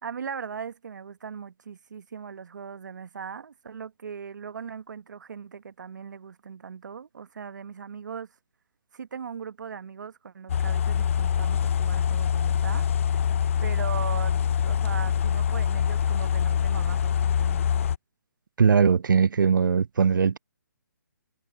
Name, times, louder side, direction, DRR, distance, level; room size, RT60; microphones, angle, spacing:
voice 1, 0.0-8.3 8.9-12.9 13.6-17.7, right 6 dB, 65° right, 1.2 m, -39 dB
sound 1, 10.5-18.0, left 8 dB, 40° left, 0.4 m, -24 dB
voice 2, 18.6-20.4, right 6 dB, 85° right, 0.4 m, -20 dB
hypercardioid pair, 160°, 11 cm